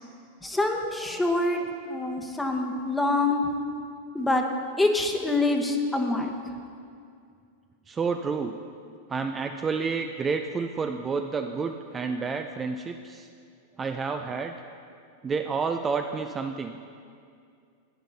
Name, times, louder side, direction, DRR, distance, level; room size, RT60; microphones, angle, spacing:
voice 1, 0.4-3.4 4.1-4.4 4.8-6.3, left 2 dB, 10° left, 3 dB, 1.1 m, -25 dB
voice 2, 7.9-8.5 9.1-13.3 13.8-14.5 15.2-16.8, right 5 dB, 20° right, 5 dB, 0.4 m, -29 dB
10.5 x 9.3 x 4.1 m, 2.3 s
hypercardioid pair, 100°, 0 cm